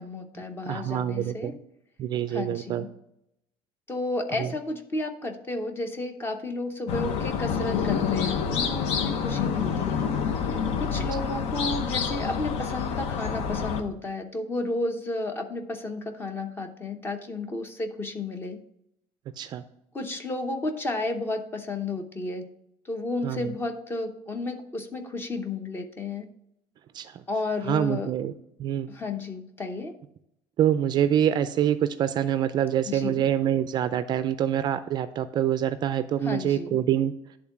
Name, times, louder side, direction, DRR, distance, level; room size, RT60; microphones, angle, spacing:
voice 1, 0.0-1.5 2.3-2.9 3.9-10.1 10.5-18.6 19.9-22.5 22.8-26.3 27.3-28.1 28.9-29.9 32.9-33.2 36.2-36.8, left 2 dB, 20° left, 6 dB, 0.8 m, -32 dB
voice 2, 0.7-1.5 2.0-2.8 4.4-4.5 19.4-19.6 23.2-23.5 26.9-27.2 27.7-28.3 28.6-28.9 30.6-37.1, right 10 dB, 40° right, 12 dB, 0.4 m, -25 dB
sound 1, 6.9-13.8, left 6 dB, 65° left, 0.8 m, -27 dB
10.5 x 3.8 x 5.9 m, 0.78 s
cardioid pair, 160°, 11 cm